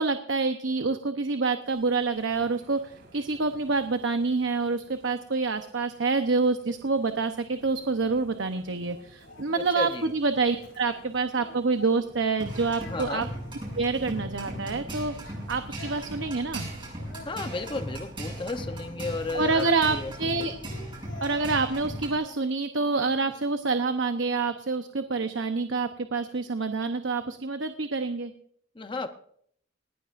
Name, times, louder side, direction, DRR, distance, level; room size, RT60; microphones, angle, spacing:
voice 1, 0.0-13.2 13.8-16.7 19.3-20.5 21.2-28.3, right 4 dB, 75° right, 8 dB, 0.9 m, -27 dB
sound 1, 1.6-18.1, right 1 dB, 50° right, 2.6 m, -52 dB
Singing, 7.7-12.2 12.5-14.9 15.2-17.9 18.5-19.8 20.4-22.4 22.8-23.3, left 2 dB, 85° left, 7.0 m, -48 dB
voice 2, 9.5-10.1 12.8-13.3 17.2-20.1 20.4-20.6 28.7-29.1, left 3 dB, 25° left, 8 dB, 0.8 m, -34 dB
sound 2, 12.4-22.1, right 1 dB, 25° right, 7.2 m, -38 dB
20.0 x 17.0 x 2.6 m, 0.64 s
head